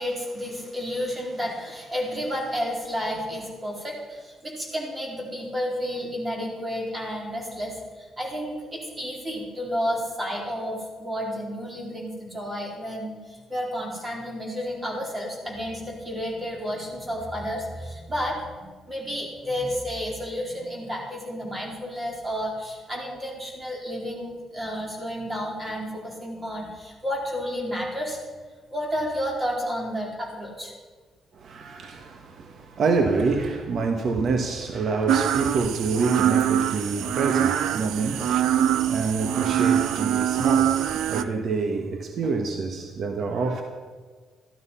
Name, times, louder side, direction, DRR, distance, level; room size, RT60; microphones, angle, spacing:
voice 1, 0.0-28.2 28.7-30.7, equal, 25° right, -2 dB, 4.3 m, -31 dB
voice 2, 31.3-43.6, right 4 dB, 60° right, 4 dB, 1.3 m, -27 dB
sound 1, 35.1-41.2, right 10 dB, 85° right, 0.5 m, -23 dB
13.5 x 12.0 x 5.7 m, 1.5 s
cardioid pair, 90°, 0 cm